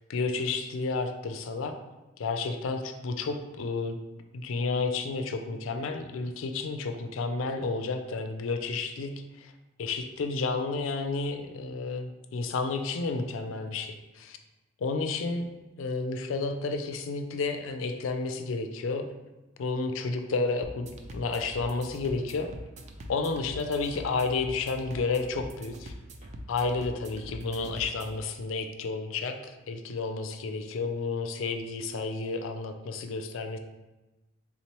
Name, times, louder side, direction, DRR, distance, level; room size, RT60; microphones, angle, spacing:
voice 1, 0.1-1.7 2.2-4.0 4.3-9.1 9.4-9.5 9.8-14.4 14.8-15.5 15.8-19.0 19.6-22.5 23.1-25.9 26.5-33.6, left 3 dB, 75° left, 6 dB, 0.4 m, -31 dB
sound 1, 20.6-28.2, equal, 35° right, 0.3 m, -44 dB
3.7 x 3.1 x 2.9 m, 1.1 s
head